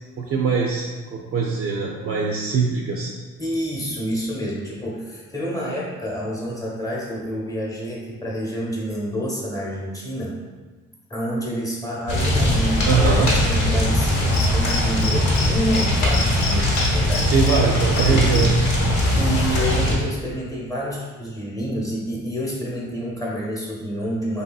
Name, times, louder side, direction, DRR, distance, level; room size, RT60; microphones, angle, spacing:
voice 1, 0.2-3.1 12.9-13.3 17.3-18.5, right 5 dB, 50° right, -1 dB, 0.4 m, -22 dB
voice 2, 3.4-10.4 11.1-13.0 13.4-17.5 18.1-18.6 19.1-24.4, equal, 10° left, -4 dB, 0.8 m, -28 dB
sound 1, 12.1-19.9, left 1 dB, 80° left, 1.0 m, -20 dB
Cricket, 14.3-15.5 15.7-15.9 16.1-17.6 18.0-18.4, left 5 dB, 55° left, 0.6 m, -28 dB
3.3 x 2.7 x 2.3 m, 1.3 s
cardioid pair, 90°, 30 cm